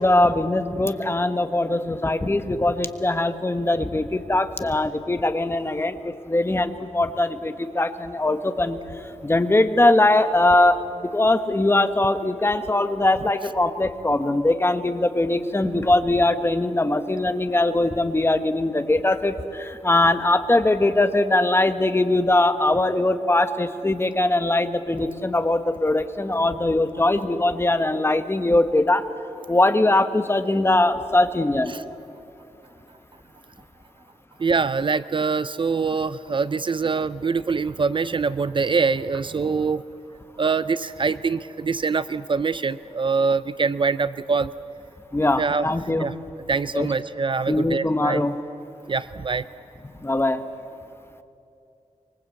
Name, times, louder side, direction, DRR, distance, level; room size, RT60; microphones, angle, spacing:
voice 1, 0.0-8.8 9.2-29.0 29.5-31.7 45.1-46.1 46.7-46.9 47.5-48.4 50.0-50.4, left 2 dB, 20° left, 9 dB, 1.3 m, -21 dB
voice 2, 34.4-39.8 40.4-44.5 45.4-45.7 46.0-46.1 46.5-48.2 48.9-49.5, right 4 dB, 40° right, 15 dB, 0.5 m, -24 dB
25.0 x 24.0 x 8.4 m, 2.8 s
wide cardioid pair, 125°, 13 cm